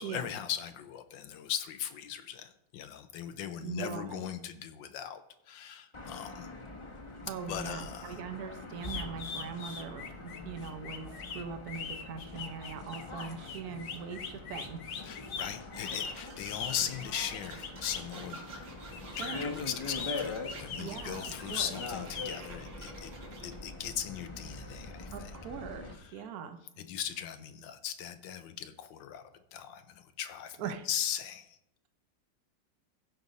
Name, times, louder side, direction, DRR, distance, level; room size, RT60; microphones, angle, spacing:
voice 1, 0.0-6.5 7.5-8.2 15.0-18.4 19.2-23.2 23.4-25.3 25.9-26.3 26.8-30.6 30.8-31.6, left 9 dB, 90° left, 9 dB, 1.4 m, -39 dB
voice 2, 3.6-4.3 7.3-14.8 19.0-19.5 20.8-21.8 25.1-26.6 30.6-30.9, right 6 dB, 65° right, 8 dB, 1.1 m, -41 dB
sound 1, 5.9-25.9, left 3 dB, 20° left, 0.8 m, -44 dB
sound 2, 8.8-18.1 18.9-22.4, left 6 dB, 55° left, 0.9 m, -41 dB
sound 3, 15.8-23.6, right 3 dB, 85° right, 2.5 m, -49 dB
15.5 x 5.3 x 4.1 m, 0.79 s
omnidirectional pair, 2.0 m